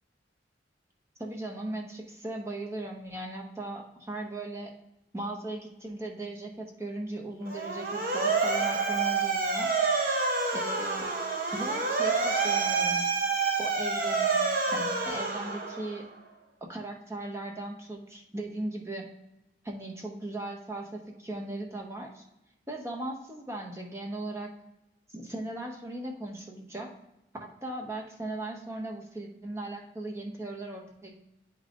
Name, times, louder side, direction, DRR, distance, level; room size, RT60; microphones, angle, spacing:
voice 1, 1.2-4.7 5.1-9.7 10.2-10.3 10.5-11.1 11.5-13.1 13.6-14.4 14.7-16.0 16.7-19.1 19.6-22.3 22.7-24.5 25.1-26.9 27.4-31.2, right 1 dB, 15° right, 0 dB, 0.8 m, -38 dB
Motor vehicle (road) / Siren, 7.5-16.1, right 4 dB, 50° right, 0.8 m, -28 dB
9.4 x 5.1 x 2.5 m, 0.88 s
head